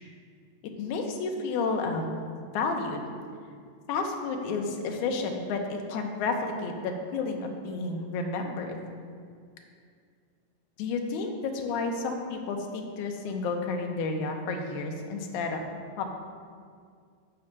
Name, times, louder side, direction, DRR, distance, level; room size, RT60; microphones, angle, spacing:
voice 1, 0.6-2.2 2.5-3.0 3.9-8.8 10.8-15.6 16.0-16.1, left 4 dB, 75° left, 3 dB, 2.1 m, -31 dB
7.0 x 6.5 x 5.7 m, 2.1 s
omnidirectional pair, 3.8 m